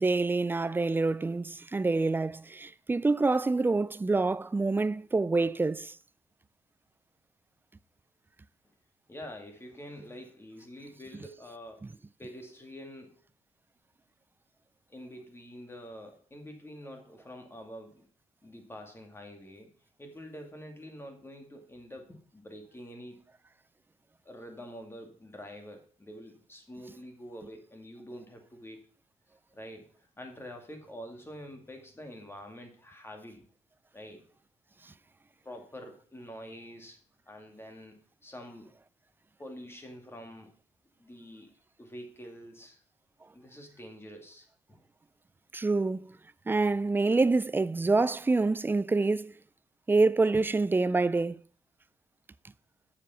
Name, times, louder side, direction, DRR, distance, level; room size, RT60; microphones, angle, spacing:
voice 1, 0.0-6.0 45.5-46.2 46.5-49.3 49.9-51.4, right 3 dB, 15° right, 0.4 m, -26 dB
voice 2, 9.1-11.9 12.2-13.2 14.9-18.0 18.4-19.7 20.0-23.2 24.2-28.8 29.5-33.4 33.9-34.3 35.4-37.0 37.3-38.7 39.4-40.5 41.0-41.5 41.8-42.8 43.3-44.8, equal, 20° left, 2.3 m, -46 dB
7.4 x 7.0 x 5.7 m
cardioid pair, 95°, 13 cm